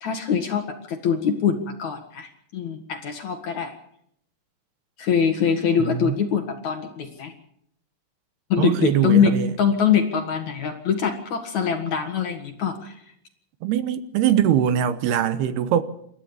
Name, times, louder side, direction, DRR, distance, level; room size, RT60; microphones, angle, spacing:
voice 1, 0.0-3.7 5.0-7.3 8.5-13.0, left 7 dB, 55° left, 2.5 m, -23 dB
voice 2, 5.8-6.2 8.6-9.5 13.6-15.8, right 10 dB, 75° right, 2.9 m, -22 dB
28.5 x 13.5 x 7.1 m
omnidirectional pair, 4.8 m